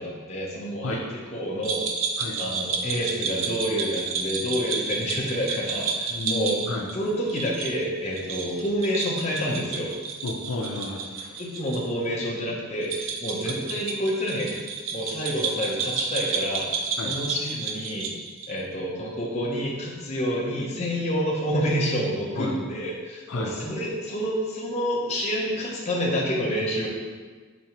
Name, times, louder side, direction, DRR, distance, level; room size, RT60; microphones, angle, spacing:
voice 1, 0.0-1.9 2.4-6.6 6.9-9.9 11.4-16.7 17.0-18.1 18.5-26.9, equal, 30° left, -4 dB, 0.7 m, -28 dB
sound 1, 1.6-11.8 12.0-12.1 12.8-18.6, right 5 dB, 60° right, 0.4 m, -31 dB
voice 2, 6.1-6.9 10.2-11.4 13.5-13.6 17.0-17.1 22.4-22.5 23.3-23.5, left 2 dB, 75° left, 0 dB, 0.6 m, -32 dB
5.2 x 3.3 x 3.0 m, 1.4 s
head